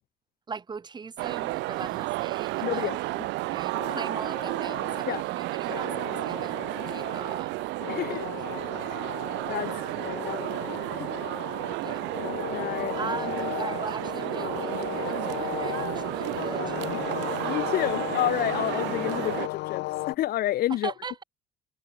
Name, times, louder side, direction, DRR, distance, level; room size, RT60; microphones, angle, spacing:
voice 1, 0.5-2.9 3.4-7.6 8.1-8.3 9.6-10.2 11.8-12.1 12.7-17.3 20.7-21.2, right 5 dB, 25° right, 2.8 m, -40 dB
sound 1, 1.2-19.5, right 21 dB, 80° right, 1.8 m, -32 dB
voice 2, 2.6-3.0 5.1-5.2 7.9-8.3 8.9-9.1 9.5-9.7 10.2-10.4 11.0-11.2 12.5-13.1 17.4-20.9, left 14 dB, 55° left, 1.4 m, -29 dB
sound 2, 3.7-20.2, left 19 dB, 75° left, 2.2 m, -36 dB
cardioid pair, 140°, 18 cm